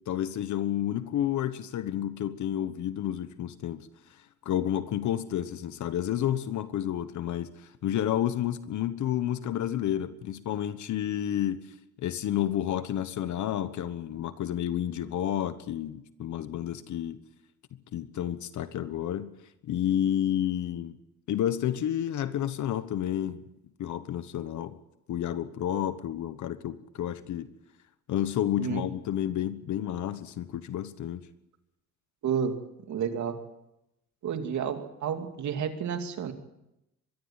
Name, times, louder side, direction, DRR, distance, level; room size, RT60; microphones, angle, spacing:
voice 1, 0.1-3.9 4.4-11.6 12.0-17.2 17.9-19.3 19.6-21.0 21.3-23.4 23.8-24.8 25.1-27.5 28.1-31.2, left 11 dB, 70° left, 13 dB, 1.2 m, -30 dB
voice 2, 32.2-32.5 32.9-33.3 34.2-36.3, right 7 dB, 70° right, 6 dB, 2.7 m, -30 dB
22.5 x 14.5 x 9.0 m, 0.89 s
cardioid pair, 90°, 30 cm